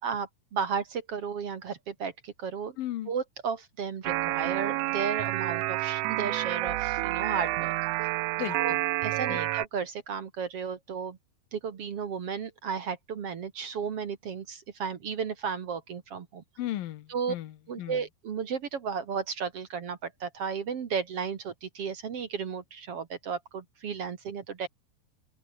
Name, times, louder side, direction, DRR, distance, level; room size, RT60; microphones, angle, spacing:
voice 1, 0.0-2.8 3.1-8.1 8.5-8.8 9.0-11.2 11.5-16.4 17.1-17.4 17.7-24.7, right 6 dB, 50° right, 2.2 m, -34 dB
voice 2, 2.8-3.1 8.4-8.8 9.3-9.5 16.6-18.0, left 13 dB, 80° left, 3.0 m, -36 dB
sound 1, 4.0-9.7, right 18 dB, 75° right, 2.1 m, -29 dB
open air
omnidirectional pair, 4.0 m